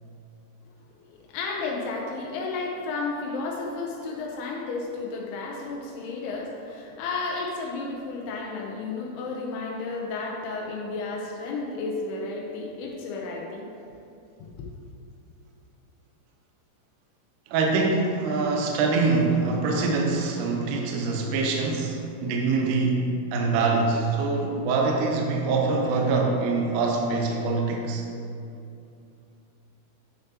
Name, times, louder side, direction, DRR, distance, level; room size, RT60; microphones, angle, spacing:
voice 1, 1.1-13.7 14.4-14.7, left 3 dB, 85° left, -1 dB, 2.8 m, -32 dB
voice 2, 17.5-28.0, right 3 dB, 80° right, 0 dB, 1.8 m, -24 dB
9.6 x 6.6 x 2.8 m, 2.6 s
omnidirectional pair, 4.5 m